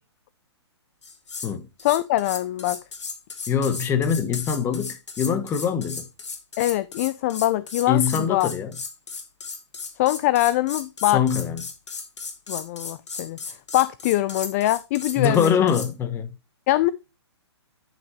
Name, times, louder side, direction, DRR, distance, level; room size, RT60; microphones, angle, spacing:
sound 1, 1.0-1.5 1.8-15.9, left 4 dB, 80° left, 2.5 m, -36 dB
voice 1, 1.8-2.8 6.6-8.5 10.0-11.2 12.5-13.4 13.7-15.7 16.7-16.9, left 15 dB, 30° left, 0.4 m, -23 dB
voice 2, 3.5-6.1 7.9-8.7 11.1-11.6 15.2-16.3, left 7 dB, 15° left, 0.9 m, -23 dB
10.5 x 5.8 x 3.0 m
hypercardioid pair, 145°, 15 cm